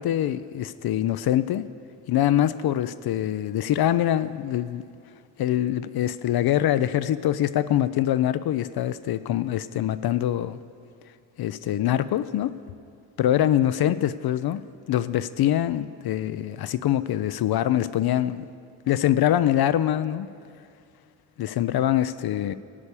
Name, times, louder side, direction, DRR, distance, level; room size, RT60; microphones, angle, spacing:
voice 1, 0.0-1.7 2.1-4.8 5.4-10.6 11.4-12.5 13.2-14.6 14.9-18.5 18.9-20.3 21.4-22.5, left 12 dB, 50° left, 13 dB, 0.5 m, -24 dB
14.5 x 5.3 x 8.4 m, 2.4 s
hypercardioid pair, 40°, 49 cm